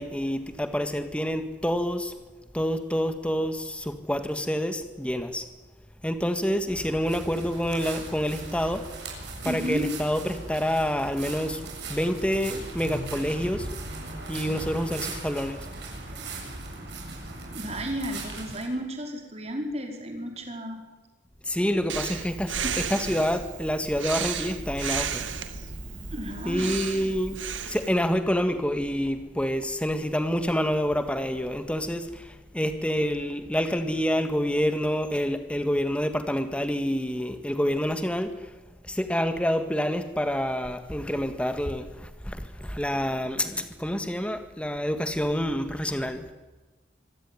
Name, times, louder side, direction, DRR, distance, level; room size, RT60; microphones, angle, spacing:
voice 1, 0.0-2.1 2.5-5.5 6.0-8.9 9.4-11.6 11.9-13.7 14.3-15.7 21.4-26.1 26.5-38.5 38.8-46.3, equal, 5° left, 8 dB, 1.8 m, -28 dB
sound 1, 6.7-18.6, right 2 dB, 65° right, 7.5 m, -38 dB
voice 2, 9.4-9.8 17.5-20.8 22.6-23.0 26.1-26.7, equal, 35° right, 3 dB, 4.7 m, -33 dB
Breathing, 21.9-27.9, right 7 dB, 85° right, 1.8 m, -33 dB
25.5 x 16.5 x 9.8 m, 1.2 s
head